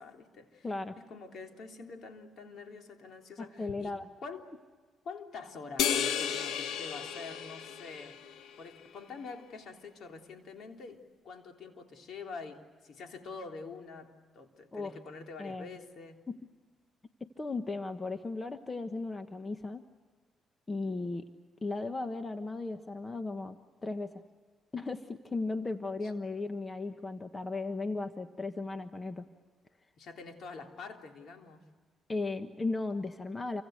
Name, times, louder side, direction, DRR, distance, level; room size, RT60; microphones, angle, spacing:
voice 1, 0.0-0.7 1.0-4.5 5.0-8.3 8.6-16.3 26.0-26.1 30.0-31.6, left 4 dB, 65° left, 3 dB, 3.5 m, -46 dB
voice 2, 0.6-0.9 3.4-4.1 14.7-15.0 15.4-15.7 16.3-16.4 17.2-19.8 20.7-21.2 21.6-23.6 23.8-24.2 24.7-29.3 32.1-33.6, left 3 dB, 25° left, 8 dB, 1.3 m, -36 dB
sound 1, 5.8-8.5, left 8 dB, 85° left, 1.4 m, -33 dB
29.0 x 25.0 x 6.5 m, 1.5 s
cardioid pair, 90°, 0 cm